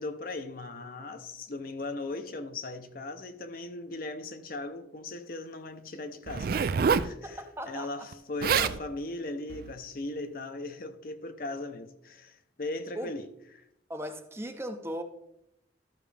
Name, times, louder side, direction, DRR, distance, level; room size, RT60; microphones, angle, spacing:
voice 1, 0.0-7.4 7.7-13.3 13.5-13.6, left 2 dB, 50° left, 0.7 m, -38 dB
Zipper (clothing), 6.3-7.1 8.1-8.2 8.4-8.8 9.5-9.7, right 6 dB, 55° right, 0.3 m, -26 dB
voice 2, 7.2-8.1 8.5-8.8 13.0-13.1 13.9-15.0, equal, 15° right, 0.6 m, -38 dB
13.0 x 6.0 x 3.3 m
head